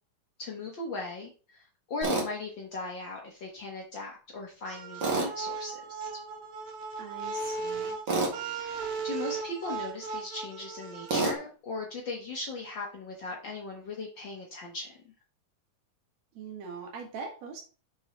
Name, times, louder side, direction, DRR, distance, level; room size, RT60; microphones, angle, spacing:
voice 1, 0.4-6.1 8.5-15.0, left 3 dB, 75° left, -1 dB, 1.0 m, -38 dB
Tools, 2.0-2.3 5.0-5.3 8.1-8.4 11.1-11.4, right 3 dB, 40° right, 2.4 m, -27 dB
sound 1, 4.7-11.4, right 4 dB, 85° right, 2.9 m, -37 dB
voice 2, 7.0-8.0 16.3-17.6, right 5 dB, 55° right, 2 dB, 2.7 m, -41 dB
7.2 x 6.2 x 3.0 m, 0.36 s
omnidirectional pair, 3.9 m